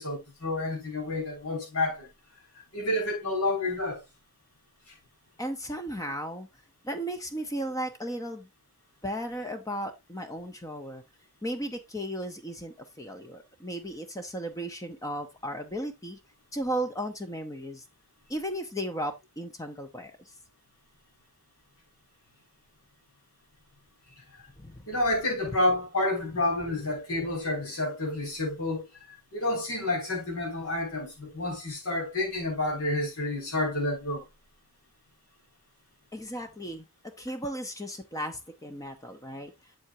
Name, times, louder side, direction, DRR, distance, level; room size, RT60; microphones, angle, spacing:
voice 1, 0.0-2.1 2.7-4.0 24.9-34.2, left 2 dB, 70° left, 6.0 m, -29 dB
voice 2, 5.4-6.5 6.8-8.5 9.0-11.0 11.4-16.2 16.5-17.8 18.3-20.1 24.6-24.9 36.1-36.9 37.2-39.5, equal, 15° left, 0.8 m, -35 dB
7.9 x 7.8 x 2.7 m
head